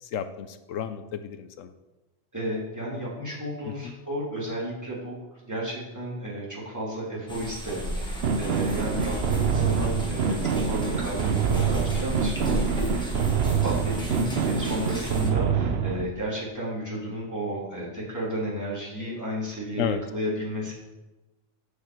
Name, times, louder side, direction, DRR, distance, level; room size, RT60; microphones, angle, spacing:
voice 1, 0.0-1.7 3.7-3.9 19.8-20.0, left 9 dB, 90° left, 11 dB, 1.0 m, -32 dB
voice 2, 2.3-5.2 5.4-13.1 13.6-20.7, right 1 dB, 15° right, -7 dB, 2.9 m, -33 dB
sound 1, 7.3-15.3, equal, 5° left, 1.6 m, -33 dB
sound 2, 8.2-16.1, right 6 dB, 60° right, 0.9 m, -26 dB
12.0 x 5.1 x 4.6 m, 1.1 s
omnidirectional pair, 1.3 m